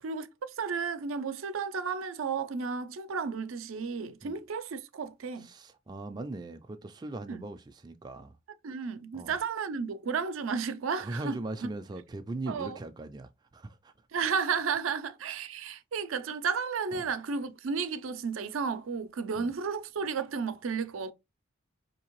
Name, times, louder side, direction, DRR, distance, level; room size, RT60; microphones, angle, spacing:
voice 1, 0.0-5.5 7.3-7.5 8.6-11.7 12.5-12.8 14.1-21.1, right 5 dB, 85° right, 0.5 m, -33 dB
voice 2, 5.4-8.3 9.1-9.3 11.0-13.9 16.9-17.0 19.4-19.5, right 2 dB, 20° right, 0.3 m, -40 dB
4.4 x 2.8 x 2.9 m
head